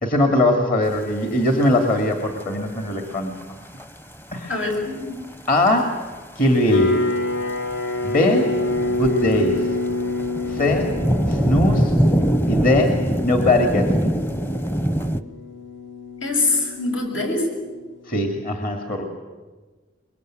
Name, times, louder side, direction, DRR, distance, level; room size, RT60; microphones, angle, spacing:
voice 1, 0.0-3.3 4.3-4.6 5.5-6.0 6.4-7.0 8.0-8.5 8.8-9.6 10.5-10.9 11.3-11.9 12.5-14.1 18.1-19.0, left 1 dB, 45° left, 3 dB, 2.5 m, -20 dB
sound 1, 0.9-1.0 1.6-1.7 2.0-2.6 3.1-15.2, right 1 dB, 10° left, 0.8 m, -24 dB
voice 2, 4.5-5.2 16.2-17.4, left 3 dB, 80° left, 2 dB, 7.3 m, -23 dB
sound 2, 6.7-17.8, left 2 dB, 60° left, 1.3 m, -27 dB
24.0 x 22.5 x 9.2 m, 1.3 s
head